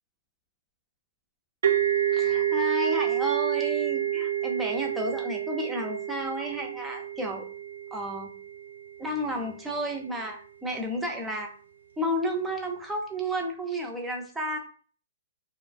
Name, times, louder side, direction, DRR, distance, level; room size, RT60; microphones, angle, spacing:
sound 1, 1.6-9.2, right 11 dB, 75° right, 0.4 m, -28 dB
voice 1, 2.1-7.4 7.9-8.3 9.0-11.5 12.0-14.6, equal, 5° right, 0 dB, 0.5 m, -32 dB
2.4 x 2.2 x 2.4 m, 0.40 s
hypercardioid pair, 150°, 0 cm